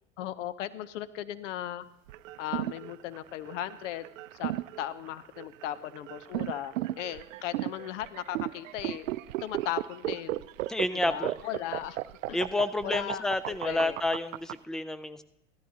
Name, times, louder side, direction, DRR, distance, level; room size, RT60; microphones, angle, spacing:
voice 1, 0.2-1.8 2.4-4.1 4.4-9.1 9.4-10.4 10.9-12.0 12.3-12.4 12.8-13.2 13.6-14.0, left 12 dB, 70° left, 15 dB, 0.8 m, -37 dB
sound 1, 2.1-14.5, right 16 dB, 80° right, 0.5 m, -35 dB
voice 2, 10.7-11.3 12.3-15.2, left 2 dB, ahead, 14 dB, 0.3 m, -30 dB
15.5 x 13.5 x 2.8 m, 0.81 s
hypercardioid pair, 90°, 39 cm